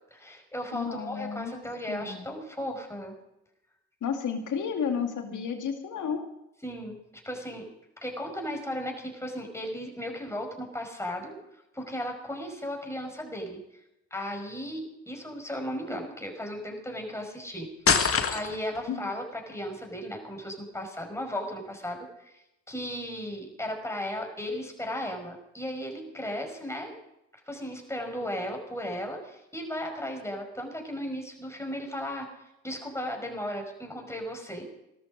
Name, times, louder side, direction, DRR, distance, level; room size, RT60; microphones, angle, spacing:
voice 1, 0.1-3.1 6.6-7.0 7.2-7.7 8.0-11.3 11.7-13.6 14.1-17.7 18.3-26.9 27.5-32.3 32.6-34.7, equal, 10° left, 2 dB, 5.4 m, -36 dB
voice 2, 0.7-1.6 1.9-2.3 4.0-6.3 18.9-19.1, left 6 dB, 55° left, 5 dB, 2.3 m, -32 dB
sound 1, 17.9-18.8, left 5 dB, 40° left, 1.7 m, -24 dB
17.0 x 13.0 x 5.2 m, 0.87 s
hypercardioid pair, 50°, 35 cm